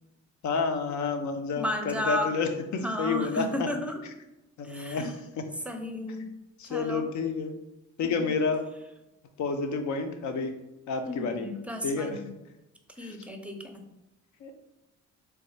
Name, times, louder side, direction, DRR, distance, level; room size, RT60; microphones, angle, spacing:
voice 1, 0.4-3.7 4.6-5.1 6.6-7.5 8.0-8.6 9.4-10.5 10.9-11.5 11.8-12.2 13.0-13.2 14.4-14.5, left 4 dB, 70° left, 6 dB, 0.7 m, -29 dB
voice 2, 1.6-2.3 2.8-4.0 4.6-5.1 5.7-6.3 6.7-7.0 8.0-8.3 11.1-12.3 13.0-13.8, left 1 dB, 5° right, 3 dB, 0.6 m, -33 dB
3.4 x 2.4 x 4.1 m, 0.94 s
cardioid pair, 90°, 30 cm